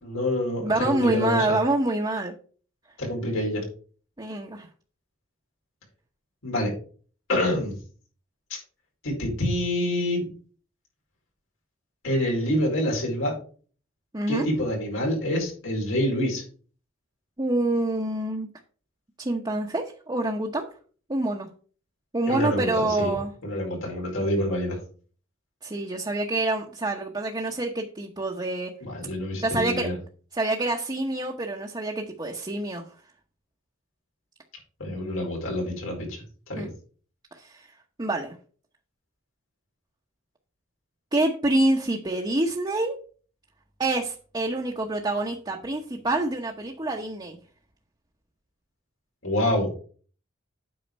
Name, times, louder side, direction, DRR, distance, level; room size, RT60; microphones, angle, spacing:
voice 1, 0.0-1.6 3.0-3.6 6.4-6.7 7.3-7.7 9.0-10.3 12.0-13.3 14.3-16.4 22.3-23.1 23.4-24.8 28.8-30.0 34.8-36.2 36.5-36.7 49.2-49.7, left 1 dB, 90° left, -1 dB, 4.6 m, -27 dB
voice 2, 0.6-2.3 4.2-4.7 14.1-14.5 17.4-18.5 19.2-20.7 21.1-21.5 22.1-23.3 25.6-28.7 29.4-29.9 30.3-32.8 36.6-36.7 37.3-37.7 38.0-38.4 41.1-43.0 43.8-47.4, right 2 dB, 20° right, 1 dB, 0.9 m, -26 dB
8.7 x 5.6 x 5.3 m, 0.41 s
head